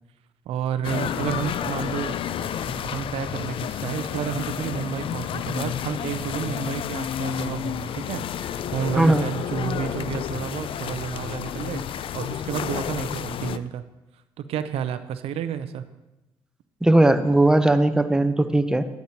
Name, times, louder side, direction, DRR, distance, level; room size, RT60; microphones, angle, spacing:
voice 1, 0.5-2.2 2.7-13.8 14.4-15.9, right 9 dB, 85° right, 11 dB, 0.5 m, -31 dB
sound 1, 0.8-13.6, left 9 dB, 60° left, 0.4 m, -30 dB
voice 2, 16.8-18.8, right 1 dB, 5° right, 8 dB, 0.7 m, -18 dB
10.5 x 9.3 x 2.9 m, 1.0 s
cardioid pair, 70°, 10 cm